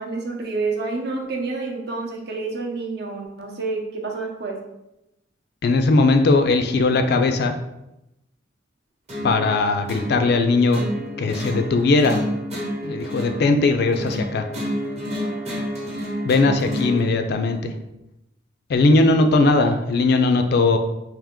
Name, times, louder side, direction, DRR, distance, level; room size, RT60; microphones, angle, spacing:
voice 1, 0.0-4.6 19.1-19.3, right 3 dB, 55° right, 1 dB, 0.7 m, -28 dB
voice 2, 5.6-7.6 9.2-10.8 11.2-12.2 12.8-14.5 16.2-17.7 18.7-20.8, left 3 dB, 55° left, 7 dB, 0.3 m, -19 dB
sound 1, 9.1-17.1, equal, 35° right, 0.9 m, -30 dB
3.5 x 2.8 x 3.6 m, 0.90 s
head